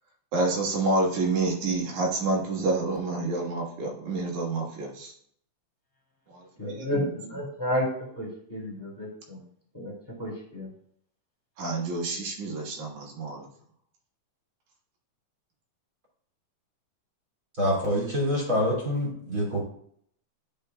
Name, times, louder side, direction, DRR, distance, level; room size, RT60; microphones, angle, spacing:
voice 1, 0.3-5.1 6.3-7.1 11.6-13.5, right 2 dB, 85° right, -1 dB, 2.8 m, -28 dB
voice 2, 6.6-7.9 8.2-9.4 9.7-9.9 10.2-10.7, left 1 dB, 5° left, -5 dB, 1.8 m, -31 dB
voice 3, 17.6-19.6, left 1 dB, 30° right, -4 dB, 2.4 m, -26 dB
10.5 x 5.2 x 2.2 m, 0.65 s
omnidirectional pair, 3.3 m